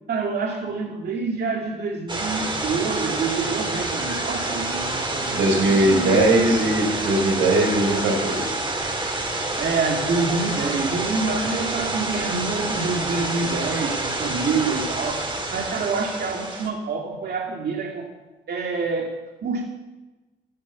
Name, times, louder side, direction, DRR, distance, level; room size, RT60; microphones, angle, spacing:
voice 1, 0.1-6.8 9.6-18.1 18.5-19.1 19.4-19.6, right 4 dB, 55° right, 1 dB, 2.4 m, -27 dB
sound 1, 2.1-16.7, right 2 dB, 25° right, 3.5 m, -28 dB
voice 2, 5.3-8.4, right 1 dB, 90° right, 1 dB, 5.3 m, -20 dB
15.0 x 12.5 x 7.4 m, 1.1 s
cardioid pair, 90°, 20 cm